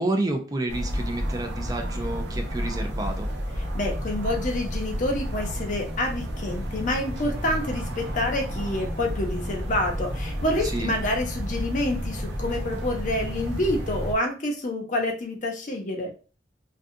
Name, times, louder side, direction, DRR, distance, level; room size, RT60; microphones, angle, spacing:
voice 1, 0.0-3.3 10.7-10.9, right 2 dB, 20° right, 4 dB, 0.4 m, -29 dB
sound 1, 0.7-14.1, equal, 80° right, 0.6 m, -31 dB
voice 2, 3.7-16.1, left 1 dB, 45° left, 2 dB, 0.7 m, -28 dB
2.5 x 2.3 x 2.6 m, 0.36 s
head